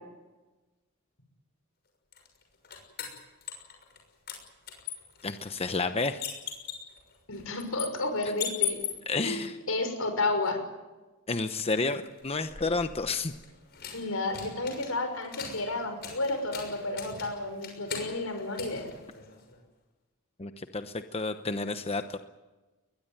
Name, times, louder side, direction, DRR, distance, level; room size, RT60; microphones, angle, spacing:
sound 1, 2.1-4.0 4.3-9.3 12.1-19.6, left 8 dB, 50° left, 6.3 m, -40 dB
voice 1, 5.2-6.2 9.1-9.6 11.3-13.3 20.4-22.2, left 3 dB, 30° left, 8 dB, 0.9 m, -30 dB
voice 2, 7.3-8.8 9.2-9.4 9.7-10.6 13.9-18.8, left 2 dB, 90° left, 7 dB, 6.0 m, -31 dB
22.0 x 21.5 x 9.2 m, 1.2 s
head